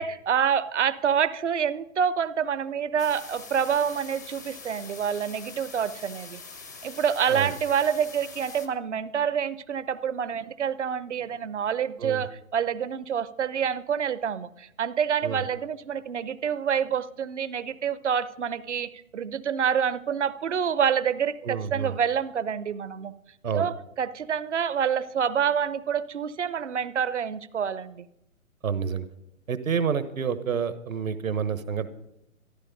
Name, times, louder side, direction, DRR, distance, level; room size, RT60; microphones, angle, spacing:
voice 1, 0.0-6.4 6.8-23.1 23.5-28.1, right 7 dB, 55° right, 16 dB, 0.8 m, -27 dB
sound 1, 3.0-8.7, left 4 dB, 15° left, 0.4 m, -44 dB
voice 2, 21.4-21.9 23.4-23.7 28.6-29.0 29.5-31.9, right 6 dB, 70° right, 12 dB, 1.3 m, -28 dB
14.0 x 11.5 x 5.2 m, 0.82 s
figure-of-eight pair, 135°, 42 cm